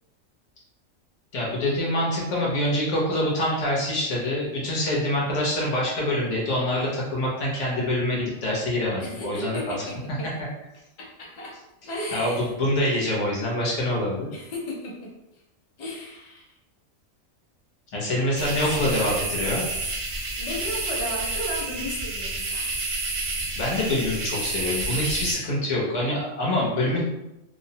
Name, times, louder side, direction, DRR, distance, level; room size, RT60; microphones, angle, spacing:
voice 1, 1.3-9.8 12.1-14.3 17.9-19.6 23.5-27.0, left 1 dB, 65° left, -4 dB, 1.1 m, -25 dB
voice 2, 9.0-10.3 11.0-11.5 11.8-12.5 14.3-15.1 15.8-16.4 18.6-19.3 20.1-22.7, left 1 dB, 40° left, -4 dB, 0.6 m, -35 dB
sound 1, 18.4-25.4, right 2 dB, 65° right, 0.4 m, -29 dB
2.7 x 2.0 x 2.7 m, 0.91 s
omnidirectional pair, 1.4 m